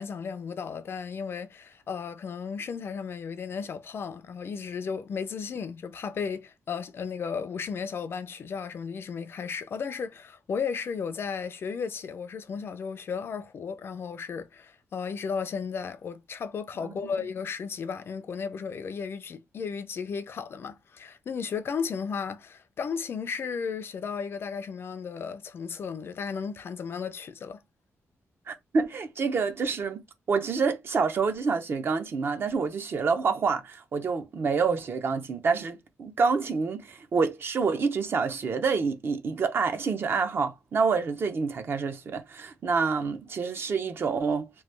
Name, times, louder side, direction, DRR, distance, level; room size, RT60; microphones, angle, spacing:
voice 1, 0.0-27.6, left 6 dB, 50° left, 0.3 m, -34 dB
voice 2, 28.5-30.0 30.3-44.5, right 5 dB, 45° right, 0.5 m, -27 dB
3.0 x 2.2 x 3.1 m
wide cardioid pair, 160°, 5 cm